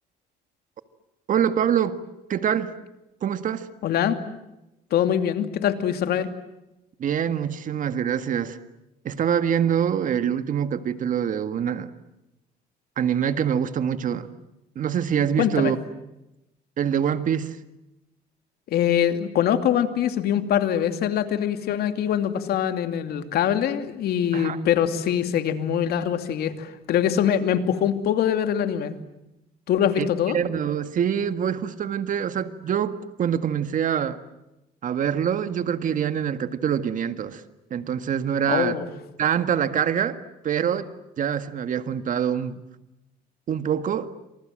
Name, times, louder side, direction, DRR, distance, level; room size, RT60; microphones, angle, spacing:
voice 1, 1.3-2.0 2.3-2.7 3.2-3.7 7.0-8.6 9.0-11.9 13.0-14.3 14.8-15.8 16.8-17.6 24.3-24.6 30.0-30.1 30.3-34.2 34.8-37.4 37.7-38.8 39.2-40.2 40.4-40.9 41.2-42.6 43.5-44.1, right 8 dB, 50° right, 10 dB, 1.8 m, -25 dB
voice 2, 3.8-4.2 4.9-6.3 15.4-15.7 18.7-28.9 29.7-30.4 38.5-38.9, left 9 dB, 70° left, 8 dB, 2.7 m, -23 dB
28.5 x 27.0 x 7.7 m, 0.93 s
cardioid pair, 110°, 17 cm